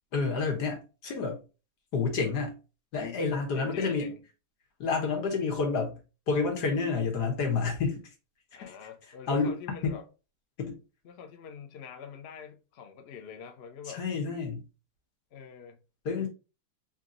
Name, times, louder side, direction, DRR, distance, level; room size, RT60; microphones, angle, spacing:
voice 1, 0.1-1.4 1.9-2.5 2.9-4.1 4.8-6.0 6.3-8.0 8.5-8.7 9.3-9.6 9.8-10.0 10.6-10.8 13.8-14.6 16.0-16.3, left 4 dB, 90° left, 1.8 m, -29 dB
voice 2, 3.3-4.2 8.5-10.0 11.0-14.1 15.3-15.8 16.2-16.3, left 7 dB, 55° left, 0.8 m, -45 dB
3.7 x 2.9 x 3.7 m
omnidirectional pair, 1.7 m